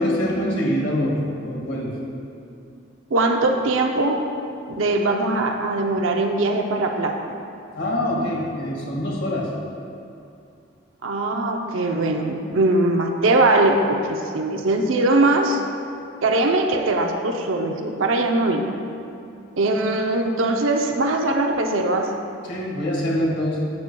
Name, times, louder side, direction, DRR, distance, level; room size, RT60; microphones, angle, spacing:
voice 1, 0.0-2.0 7.7-9.5 22.4-23.6, equal, 70° left, -3 dB, 1.8 m, -24 dB
voice 2, 3.1-4.2 4.7-7.3 11.0-15.6 16.2-18.7 19.6-22.1, right 2 dB, 85° right, 3 dB, 0.6 m, -21 dB
10.5 x 8.4 x 2.2 m, 2.6 s
head